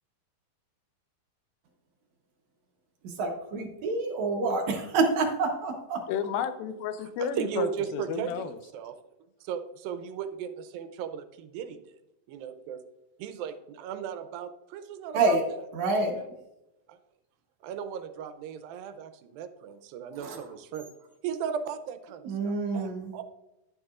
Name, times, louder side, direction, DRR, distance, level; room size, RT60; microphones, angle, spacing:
voice 1, 3.0-6.0 15.1-15.4 15.7-16.2 20.1-20.5 22.2-23.2, right 3 dB, 65° right, 2 dB, 2.0 m, -27 dB
voice 2, 6.1-8.6, left 7 dB, 90° left, 11 dB, 2.5 m, -32 dB
voice 3, 7.4-9.0 9.4-11.8 12.3-12.8 13.2-15.4 16.0-16.3 16.9-17.0 17.6-20.9 21.2-23.2, right 8 dB, 85° right, 10 dB, 2.4 m, -36 dB
10.5 x 9.5 x 2.4 m, 0.93 s
omnidirectional pair, 4.1 m